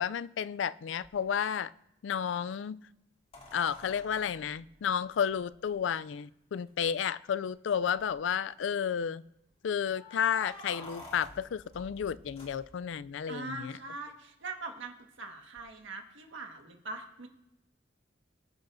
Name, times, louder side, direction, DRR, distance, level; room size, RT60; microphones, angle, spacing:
voice 1, 0.0-1.7 2.0-2.8 3.5-9.2 9.6-13.7, left 8 dB, 70° left, 0.4 m, -32 dB
sound 1, 1.0-1.1 3.3-5.7 6.7-6.8 7.1-7.2 7.7-8.2 9.9-13.1 15.6-15.7, left 2 dB, 35° left, 2.6 m, -50 dB
voice 2, 13.3-17.3, right 3 dB, 90° right, 1.6 m, -42 dB
25.0 x 8.9 x 2.6 m
head